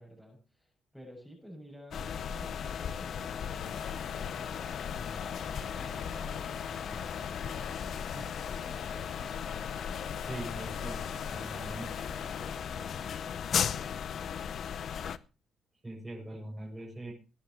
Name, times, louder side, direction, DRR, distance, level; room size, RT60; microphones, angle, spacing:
voice 1, 0.0-3.8 4.3-8.3 10.5-10.7 11.8-14.0, equal, 5° left, -1 dB, 7.1 m, -52 dB
sound 1, 1.9-15.2, left 8 dB, 60° left, 0.7 m, -36 dB
Stream, 3.5-12.6, left 6 dB, 80° left, 3.6 m, -45 dB
voice 2, 10.2-11.9 15.8-17.1, right 1 dB, 15° right, -3 dB, 7.2 m, -42 dB
21.5 x 10.0 x 3.1 m, 0.32 s
cardioid pair, 85°, 0 cm